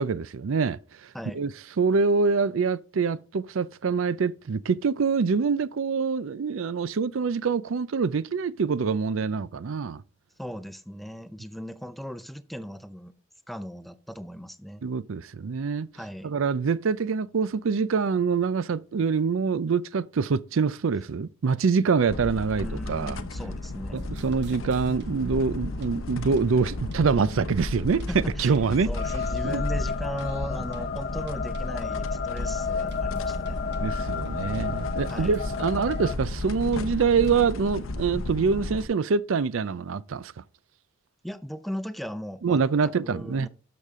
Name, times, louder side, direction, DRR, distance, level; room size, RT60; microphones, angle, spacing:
voice 1, 0.0-1.1 1.3-1.5 1.8-10.0 14.8-15.9 16.2-23.2 23.9-28.0 28.4-28.9 29.4-29.6 33.8-40.3 42.4-43.5, right 5 dB, 80° right, 0.5 m, -25 dB
voice 2, 10.4-13.2 13.5-14.8 15.9-16.3 22.6-24.1 28.1-28.5 28.8-33.6 35.1-35.4 41.2-43.5, equal, ahead, 0.6 m, -37 dB
sound 1, 22.1-38.9, left 2 dB, 80° left, 0.8 m, -33 dB
sound 2, 24.0-37.4, right 2 dB, 60° right, 0.8 m, -49 dB
sound 3, 29.0-36.2, left 6 dB, 50° left, 0.6 m, -33 dB
12.0 x 6.6 x 3.6 m
head